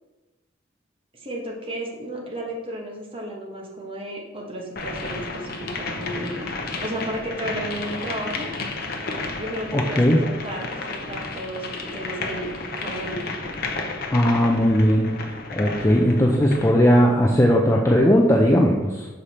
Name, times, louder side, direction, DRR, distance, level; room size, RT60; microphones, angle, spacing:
voice 1, 1.1-6.5 6.8-8.5 9.4-12.5 12.8-13.3, right 1 dB, 30° right, -2 dB, 1.4 m, -33 dB
sound 1, 4.8-16.8, left 3 dB, 50° left, 0.8 m, -32 dB
voice 2, 9.7-10.2 14.1-15.1 15.5-19.1, equal, 15° left, 0 dB, 0.5 m, -18 dB
6.7 x 5.0 x 4.3 m, 1.1 s
head